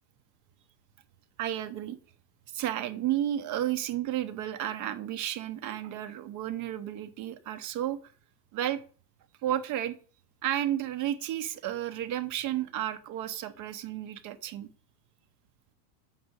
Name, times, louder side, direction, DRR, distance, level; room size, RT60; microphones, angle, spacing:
voice 1, 1.4-2.0 2.5-8.0 8.5-8.8 9.4-10.0 10.4-14.7, right 12 dB, 40° right, 11 dB, 0.9 m, -32 dB
7.6 x 6.5 x 7.9 m, 0.41 s
supercardioid pair, 150°, 48 cm